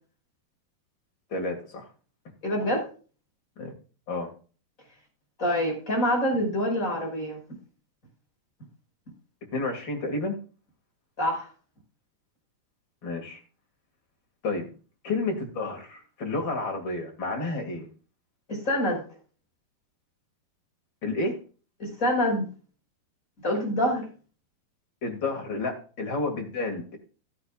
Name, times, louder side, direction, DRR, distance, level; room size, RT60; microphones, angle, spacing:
voice 1, 1.3-1.8 2.6-2.7 3.6-3.7 4.1-4.3 9.5-10.4 13.0-13.4 14.4-14.7 15.0-17.9 21.0-21.4 25.0-27.0, left 2 dB, 35° left, 3 dB, 2.3 m, -30 dB
voice 2, 2.4-2.8 5.4-7.4 11.2-11.5 18.5-19.0 21.8-22.5 23.4-24.0, equal, 20° left, 0 dB, 5.5 m, -26 dB
14.0 x 11.0 x 2.4 m, 0.38 s
omnidirectional pair, 4.7 m